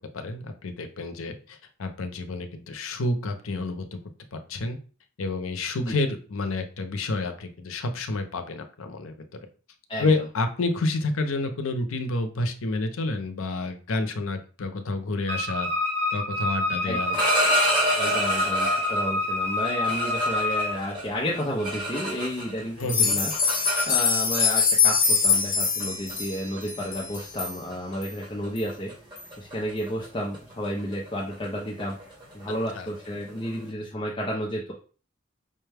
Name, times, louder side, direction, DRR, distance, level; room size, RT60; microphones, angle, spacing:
voice 1, 0.1-4.0 4.3-4.8 5.2-9.1 10.0-15.7 16.1-17.1 22.8-23.2 32.7-32.9, left 2 dB, 85° left, 6 dB, 0.6 m, -29 dB
Wind instrument woodwind instrument, 15.3-20.8, left 2 dB, 60° right, 1.2 m, -27 dB
voice 2, 16.8-17.2 18.0-28.9 29.4-32.0 32.3-34.7, equal, 25° left, -4 dB, 0.5 m, -32 dB
sound 1, 16.9-19.1 19.6-22.6 22.9-24.4 25.3-25.5 25.8-26.1 26.6-26.8 27.2-27.4 27.7-28.0 28.2-33.6, equal, 20° right, 1.5 m, -29 dB
sound 2, 22.8-27.5 28.0-28.1 28.6-28.7 29.2-29.3, left 5 dB, 40° left, 0.9 m, -23 dB
5.3 x 2.2 x 3.4 m, 0.38 s
head